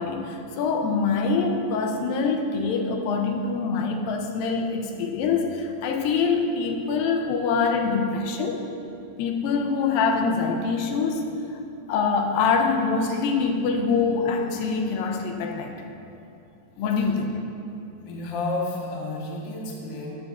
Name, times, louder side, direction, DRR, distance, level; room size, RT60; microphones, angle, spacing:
voice 1, 0.0-8.7 9.2-11.3 11.9-15.8 16.8-17.3, left 4 dB, 90° left, 3 dB, 2.4 m, -24 dB
voice 2, 18.0-20.1, left 2 dB, 50° left, -3 dB, 1.4 m, -31 dB
14.0 x 9.6 x 2.6 m, 2.7 s
omnidirectional pair, 4.0 m